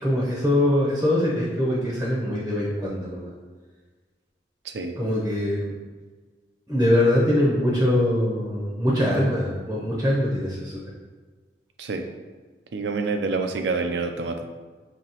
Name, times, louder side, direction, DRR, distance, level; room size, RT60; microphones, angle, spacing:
voice 1, 0.0-3.3 4.9-5.7 6.7-10.8, left 1 dB, 10° right, -5 dB, 0.7 m, -23 dB
voice 2, 12.7-14.4, right 4 dB, 75° right, 6 dB, 0.4 m, -27 dB
5.6 x 2.9 x 2.9 m, 1.4 s
head